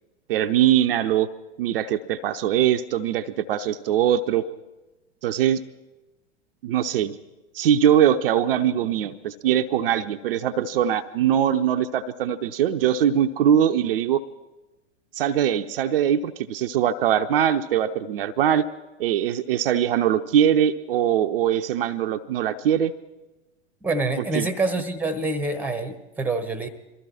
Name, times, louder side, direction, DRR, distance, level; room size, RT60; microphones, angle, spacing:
voice 1, 0.3-1.3 1.6-4.4 5.2-5.6 6.6-7.2 7.5-14.2 15.1-18.6 19.0-22.9 24.3-24.5, right 10 dB, 50° right, 7 dB, 0.7 m, -22 dB
voice 2, 23.8-26.7, right 2 dB, 5° right, 12 dB, 1.0 m, -26 dB
23.0 x 13.5 x 4.3 m, 1.1 s
figure-of-eight pair, 95°, 36 cm